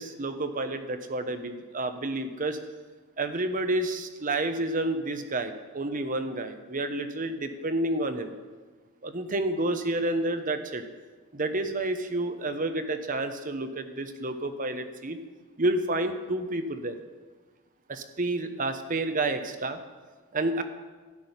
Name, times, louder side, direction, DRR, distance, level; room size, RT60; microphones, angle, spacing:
voice 1, 0.0-2.6 3.2-8.3 9.0-10.8 11.3-15.2 15.6-16.9 17.9-19.8 20.3-20.6, right 2 dB, 40° right, 8 dB, 1.0 m, -30 dB
13.0 x 6.3 x 9.9 m, 1.4 s
head